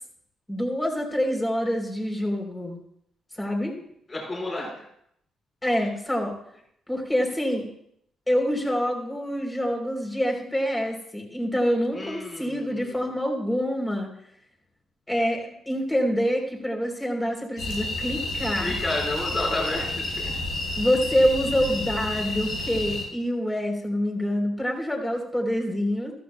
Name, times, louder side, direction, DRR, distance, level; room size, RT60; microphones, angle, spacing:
voice 1, 0.5-2.8 3.4-3.8 5.6-6.4 6.9-7.7 8.3-14.1 15.1-18.8 20.8-26.1, equal, 15° left, 1 dB, 3.5 m, -26 dB
voice 2, 4.1-4.9 11.9-13.0 18.6-20.4, left 2 dB, 30° left, -2 dB, 4.9 m, -31 dB
sound 1, 17.6-23.0, left 2 dB, 75° left, 3.9 m, -30 dB
14.5 x 13.5 x 2.2 m, 0.71 s
hypercardioid pair, 45°, 0 cm